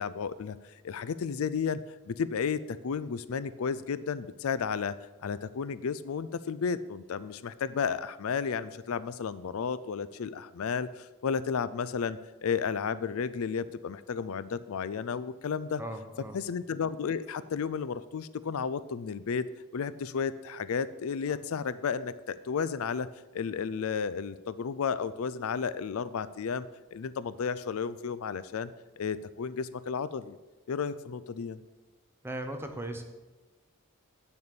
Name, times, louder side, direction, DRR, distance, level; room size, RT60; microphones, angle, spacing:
voice 1, 0.0-1.8 2.1-15.8 16.3-19.5 19.7-23.1 23.3-26.6 26.9-28.7 29.0-30.4 30.7-31.6, left 6 dB, 70° left, 16 dB, 0.4 m, -33 dB
voice 2, 15.8-16.4 32.2-33.0, right 1 dB, 10° right, 4 dB, 1.0 m, -37 dB
8.7 x 6.7 x 6.8 m, 1.2 s
head